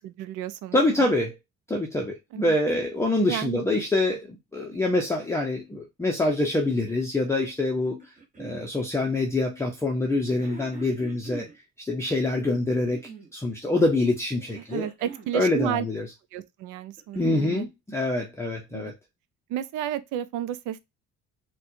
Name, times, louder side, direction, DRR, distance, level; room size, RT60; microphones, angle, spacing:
voice 1, 0.2-0.8 2.3-2.5 3.3-3.6 14.7-15.9 16.3-17.7 18.7-18.9 19.5-20.8, right 11 dB, 85° right, 0.5 m, -32 dB
voice 2, 0.7-1.3 1.7-11.5 11.8-13.0 13.3-14.8 15.3-16.1 17.2-18.9, left 2 dB, 10° left, 0.5 m, -25 dB
sound 1, 7.8-8.6 10.1-11.6 12.6-13.4 14.4-15.4 16.8-17.7 18.8-18.9, right 3 dB, 25° right, 1.0 m, -44 dB
4.2 x 2.2 x 2.6 m
cardioid pair, 140°, 30 cm